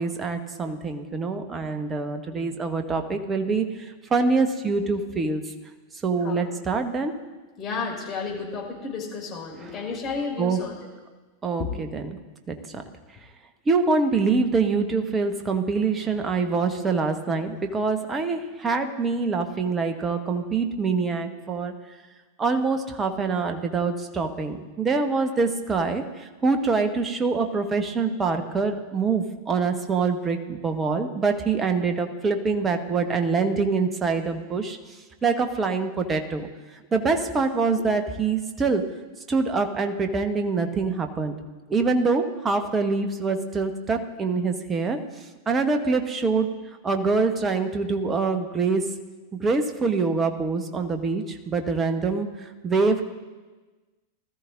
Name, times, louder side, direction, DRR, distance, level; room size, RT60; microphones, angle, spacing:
voice 1, 0.0-3.7 4.1-5.4 6.0-7.1 9.6-9.8 10.4-10.7 11.4-12.2 12.5-12.8 13.7-21.7 22.4-26.0 26.4-34.8 35.2-36.5 36.9-38.8 39.3-41.3 41.7-45.0 45.5-46.5 46.8-48.8 49.3-52.3 52.6-53.1, right 4 dB, 20° right, 6 dB, 1.2 m, -25 dB
voice 2, 7.6-10.7 11.6-11.7, left 5 dB, 30° left, -3 dB, 5.1 m, -32 dB
20.0 x 13.5 x 2.6 m, 1.3 s
figure-of-eight pair, 90°, 0 cm